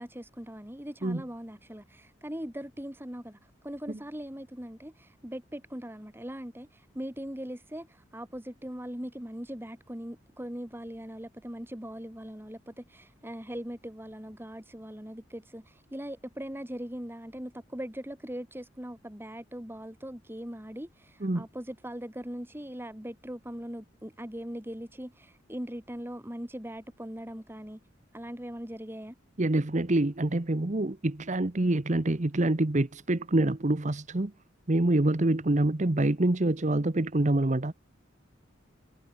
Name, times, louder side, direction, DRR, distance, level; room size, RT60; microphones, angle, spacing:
voice 1, 0.0-27.8 28.1-29.1, equal, 10° right, 2.6 m, -40 dB
voice 2, 29.4-34.3 34.7-37.7, right 2 dB, 40° right, 1.0 m, -26 dB
head